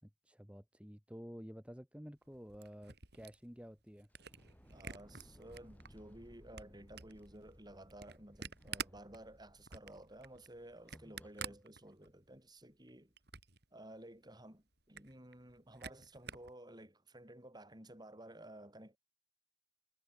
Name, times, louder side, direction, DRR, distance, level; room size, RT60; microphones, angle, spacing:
voice 1, 0.0-4.1, equal, 5° right, 4.9 m, -51 dB
Camera, 2.2-5.9 6.3-12.4 12.7-13.6 14.0-14.1 14.3-14.4 14.7-16.5, right 6 dB, 60° right, 6.4 m, -49 dB
sound 1, 4.1-11.7, equal, 10° left, 6.7 m, -62 dB
voice 2, 4.7-13.1 13.7-19.0, right 1 dB, 25° right, 6.9 m, -54 dB
head